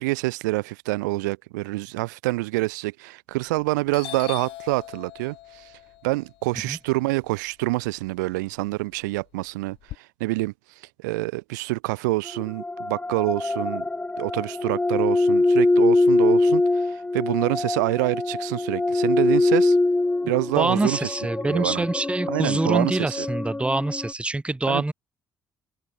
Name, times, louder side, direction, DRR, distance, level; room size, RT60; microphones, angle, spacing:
voice 1, 0.0-5.7 6.0-10.5 11.0-13.8 14.2-19.8 20.3-21.1 21.4-21.8 22.3-23.3 24.7-24.9, right 22 dB, 75° right, 1.4 m, -26 dB
Doorbell, 3.3-3.6 3.9-8.1 8.4-10.0, left 16 dB, 60° left, 4.4 m, -41 dB
sound 1, 12.3-24.1, left 2 dB, 15° left, 1.2 m, -23 dB
voice 2, 20.5-24.9, right 2 dB, 10° right, 1.1 m, -25 dB
figure-of-eight pair, 45°, 10 cm